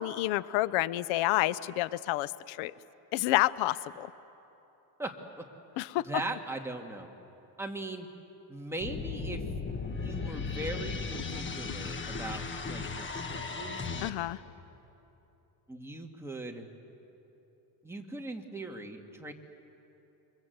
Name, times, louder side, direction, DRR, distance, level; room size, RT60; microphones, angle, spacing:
voice 1, 0.0-2.7 3.1-4.1 5.8-6.0 14.0-14.4, left 17 dB, 85° left, 17 dB, 0.7 m, -29 dB
voice 2, 5.0-5.4 6.0-7.1 7.6-8.1 8.5-9.4 9.9-13.9 15.7-16.7 17.8-19.3, right 2 dB, 5° right, 1 dB, 2.1 m, -39 dB
sound 1, 8.8-14.1, left 4 dB, 25° left, 1.5 m, -36 dB
28.0 x 24.5 x 8.0 m, 3.0 s
cardioid pair, 125°, 46 cm